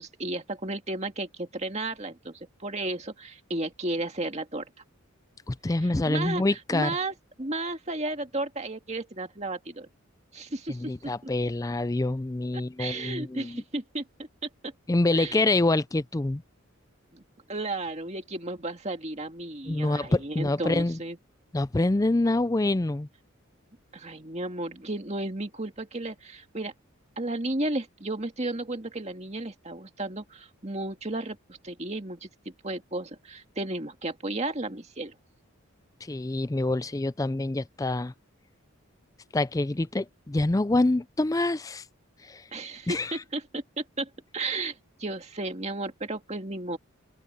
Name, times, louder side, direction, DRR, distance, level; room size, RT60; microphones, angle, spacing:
voice 1, 0.0-4.7 5.8-9.9 10.3-11.1 12.5-14.0 14.4-14.7 15.1-15.4 17.1-17.2 17.5-21.2 23.9-26.7 27.2-35.1 42.5-46.8, right 2 dB, 30° right, 2.0 m, -34 dB
voice 2, 5.5-7.0 10.7-13.6 14.9-16.4 19.7-21.0 21.5-23.1 36.0-38.1 39.3-41.8 42.2-42.5 42.9-43.2, left 2 dB, 15° left, 0.4 m, -26 dB
open air
head